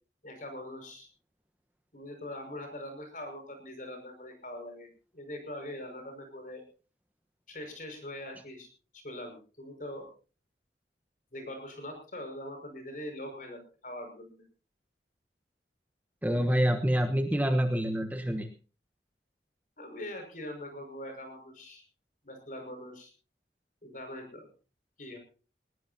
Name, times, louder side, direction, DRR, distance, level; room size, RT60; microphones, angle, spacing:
voice 1, 0.2-1.1 1.9-4.9 5.1-6.6 7.5-10.1 11.3-14.4 19.8-21.8 22.2-23.1 23.8-24.5 25.0-25.2, left 1 dB, 50° left, 5 dB, 5.7 m, -42 dB
voice 2, 16.2-18.5, equal, 10° right, 6 dB, 1.1 m, -27 dB
20.5 x 19.0 x 2.8 m, 0.37 s
head